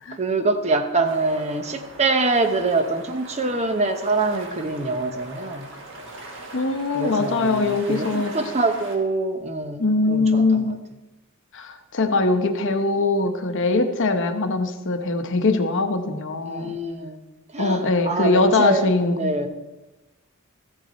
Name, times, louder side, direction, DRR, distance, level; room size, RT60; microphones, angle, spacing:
voice 1, 0.1-5.7 6.9-10.8 16.4-17.2 17.5-19.5, right 3 dB, 30° right, 8 dB, 0.8 m, -25 dB
sound 1, 1.0-9.0, right 2 dB, 65° right, 1.5 m, -40 dB
voice 2, 6.5-8.3 9.8-10.7 11.5-16.7 17.6-19.4, left 3 dB, 60° left, 7 dB, 0.9 m, -22 dB
14.0 x 6.6 x 4.2 m, 1.1 s
head